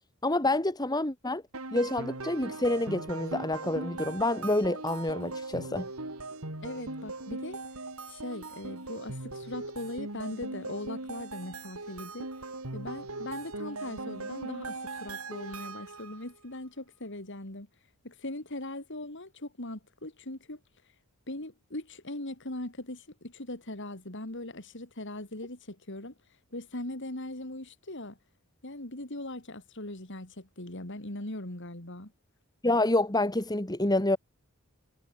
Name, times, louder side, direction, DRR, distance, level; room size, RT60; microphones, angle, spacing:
voice 1, 0.2-1.4 1.7-5.9 32.6-34.2, left 2 dB, 20° left, 1.9 m, -28 dB
sound 1, 1.5-16.2, right 2 dB, 75° right, 4.1 m, -39 dB
voice 2, 6.6-7.6 8.1-12.3 12.7-17.7 18.0-20.6 21.3-26.1 26.5-28.2 28.6-32.1, left 1 dB, 55° left, 3.7 m, -40 dB
head